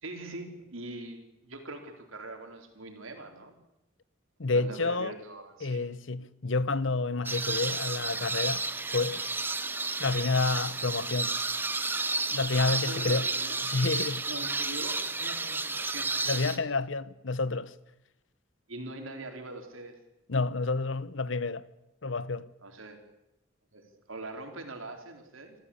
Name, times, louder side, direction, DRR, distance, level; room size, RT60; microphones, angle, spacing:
voice 1, 0.0-3.6 4.5-5.8 12.6-13.7 14.3-16.1 18.7-20.0 22.6-23.0 23.7-25.6, right 2 dB, 85° right, 4.0 m, -42 dB
voice 2, 4.4-5.1 5.6-8.7 8.9-9.2 10.0-11.4 12.3-13.3 13.6-14.3 16.3-17.7 20.3-21.7 22.0-22.5, left 3 dB, 70° left, 0.9 m, -29 dB
sound 1, 7.3-16.6, right 3 dB, 10° right, 0.9 m, -32 dB
27.0 x 14.5 x 8.5 m
head